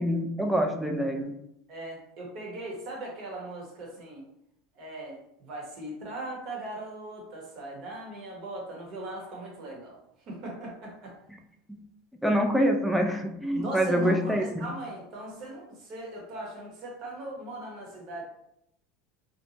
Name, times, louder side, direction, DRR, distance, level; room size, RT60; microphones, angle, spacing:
voice 1, 0.0-1.3 11.7-11.8 12.2-14.7, equal, ahead, 2 dB, 0.3 m, -26 dB
voice 2, 1.7-4.3 4.7-10.0 10.3-11.1 13.5-18.2, right 1 dB, 45° right, -2 dB, 1.0 m, -39 dB
2.6 x 2.2 x 2.8 m, 0.78 s
supercardioid pair, 135°, 0 cm